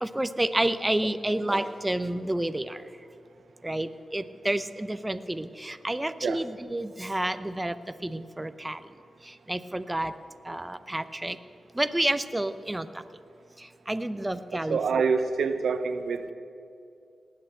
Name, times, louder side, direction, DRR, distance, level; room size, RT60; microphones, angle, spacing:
voice 1, 0.0-2.8 3.6-7.8 8.0-8.8 9.5-10.1 10.5-11.4 11.8-12.9 13.9-15.0, right 1 dB, 15° right, 11 dB, 0.7 m, -29 dB
voice 2, 14.5-16.3, right 5 dB, 80° right, 10 dB, 0.8 m, -26 dB
19.0 x 8.6 x 7.9 m, 2.6 s
cardioid pair, 60°, 0 cm